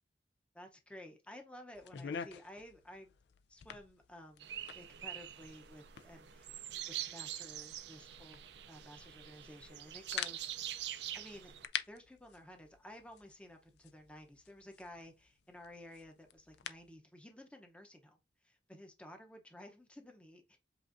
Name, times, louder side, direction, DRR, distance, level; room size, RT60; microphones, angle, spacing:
voice 1, 0.5-3.1 3.5-4.5 4.7-6.6 7.1-10.7 11.1-11.5 11.9-20.6, left 1 dB, 5° left, 0.7 m, -54 dB
sound 1, 1.7-17.0, left 8 dB, 70° left, 0.4 m, -49 dB
sound 2, 4.4-11.7, right 11 dB, 75° right, 0.5 m, -45 dB
7.7 x 2.6 x 2.5 m
head